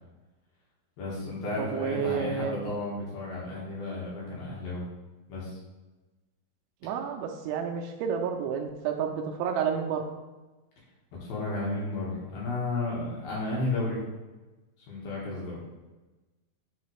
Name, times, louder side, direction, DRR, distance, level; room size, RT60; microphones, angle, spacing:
voice 1, 1.0-4.8 5.3-5.6 11.2-14.0 14.9-15.6, left 2 dB, 65° left, -6 dB, 2.8 m, -33 dB
voice 2, 1.6-2.6 6.8-10.0, right 7 dB, 85° right, 3 dB, 2.9 m, -30 dB
10.5 x 3.9 x 3.3 m, 1.2 s
omnidirectional pair, 5.7 m